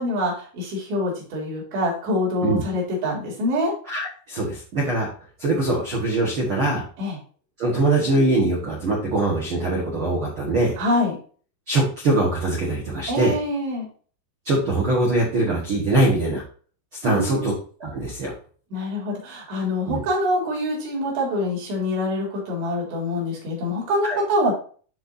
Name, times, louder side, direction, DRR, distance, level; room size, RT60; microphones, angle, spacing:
voice 1, 0.0-3.7 7.0-7.2 10.8-11.2 13.1-13.9 17.1-17.5 18.7-24.5, left 1 dB, 70° right, -3 dB, 5.4 m, -25 dB
voice 2, 3.9-5.1 5.4-6.8 7.6-10.8 11.7-13.3 14.4-16.4 17.0-17.5 17.8-18.3 19.9-20.0 24.0-24.2, right 2 dB, 45° right, -3 dB, 1.7 m, -22 dB
12.5 x 4.8 x 2.7 m, 0.41 s
omnidirectional pair, 5.1 m